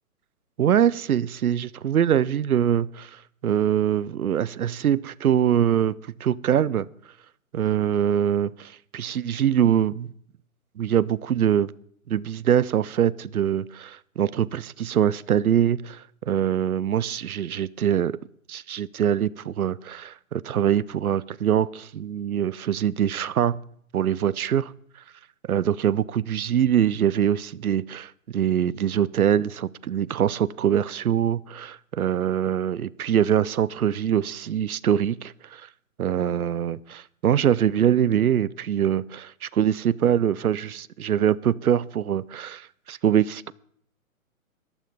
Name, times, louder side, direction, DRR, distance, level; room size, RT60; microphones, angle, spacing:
voice 1, 0.6-6.9 7.5-10.1 10.8-11.7 12.1-18.2 18.5-23.6 23.9-24.7 25.5-35.7 36.0-43.5, right 9 dB, 80° right, 0.7 m, -23 dB
14.5 x 12.0 x 5.3 m
hypercardioid pair, 140°, 43 cm